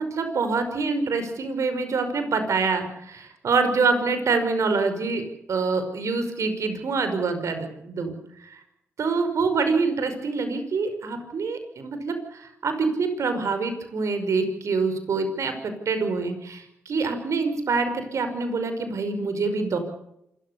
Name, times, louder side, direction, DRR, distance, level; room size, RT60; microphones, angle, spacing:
voice 1, 0.0-5.2 5.5-8.1 8.4-8.6 9.0-19.8, right 4 dB, 65° right, 8 dB, 5.6 m, -26 dB
27.0 x 14.5 x 8.5 m, 0.78 s
supercardioid pair, 50°, 6 cm